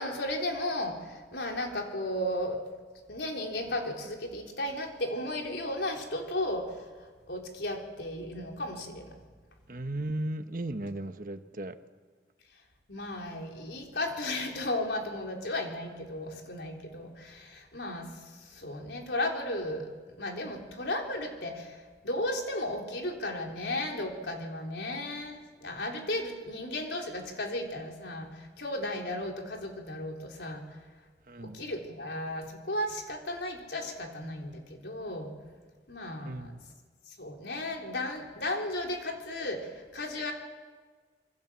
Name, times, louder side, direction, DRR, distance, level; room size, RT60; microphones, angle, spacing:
voice 1, 0.0-2.6 3.1-6.9 7.3-9.1 12.9-18.1 18.5-19.9 20.2-21.8 22.0-30.7 31.4-35.3 35.9-36.6 37.2-40.3, left 1 dB, 80° left, 1 dB, 3.9 m, -35 dB
voice 2, 9.7-11.8 31.3-31.6 36.2-36.6, right 1 dB, 50° right, 8 dB, 1.2 m, -36 dB
27.0 x 22.5 x 7.5 m, 1.5 s
head